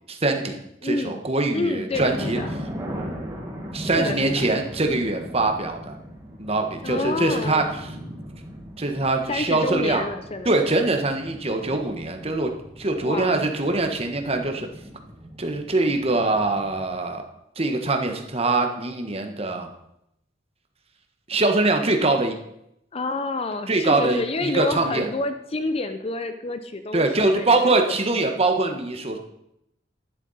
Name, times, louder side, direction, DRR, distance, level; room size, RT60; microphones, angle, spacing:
voice 1, 0.1-2.4 3.7-6.0 6.4-7.7 8.8-10.0 10.4-12.5 12.8-14.7 15.4-17.2 17.6-19.7 21.3-22.4 23.7-25.1 26.9-29.2, right 2 dB, 35° right, 4 dB, 1.3 m, -23 dB
voice 2, 0.8-1.2 1.5-2.5 3.9-4.5 6.8-7.7 9.3-10.5 13.0-13.4 22.9-28.0, left 2 dB, 30° left, 9 dB, 0.6 m, -28 dB
sound 1, 1.9-17.0, equal, 15° right, 2.0 m, -38 dB
11.0 x 11.0 x 4.2 m, 0.79 s
head